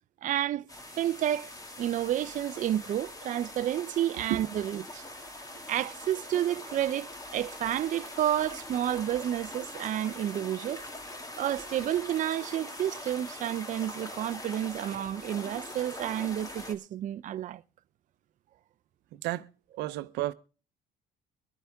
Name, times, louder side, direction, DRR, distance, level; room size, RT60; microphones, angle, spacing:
voice 1, 0.2-0.7 1.0-1.5 1.8-5.0 5.7-10.8 11.4-17.6, right 11 dB, 50° right, 0.5 m, -30 dB
sound 1, 0.7-16.7, left 1 dB, 20° left, 2.1 m, -43 dB
voice 2, 19.8-20.3, right 16 dB, 85° right, 0.7 m, -31 dB
23.5 x 8.1 x 3.5 m
cardioid pair, 110°, 17 cm